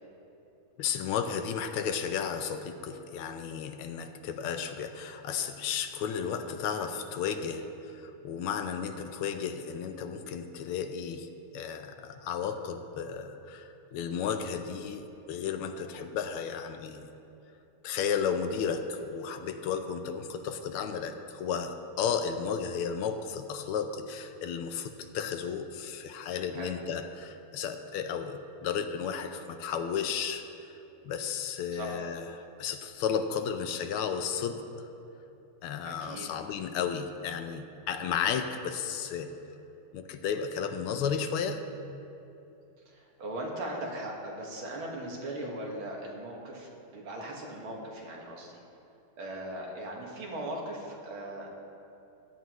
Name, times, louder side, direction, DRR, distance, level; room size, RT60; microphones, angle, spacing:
voice 1, 0.8-17.1 17.8-30.5 31.0-34.9 35.6-39.3 39.9-41.6, left 7 dB, 80° left, 8 dB, 1.5 m, -33 dB
voice 2, 35.8-36.3 42.9-48.6 49.2-51.5, right 1 dB, 70° right, -2 dB, 2.4 m, -39 dB
16.0 x 11.0 x 3.0 m, 2.8 s
omnidirectional pair, 2.4 m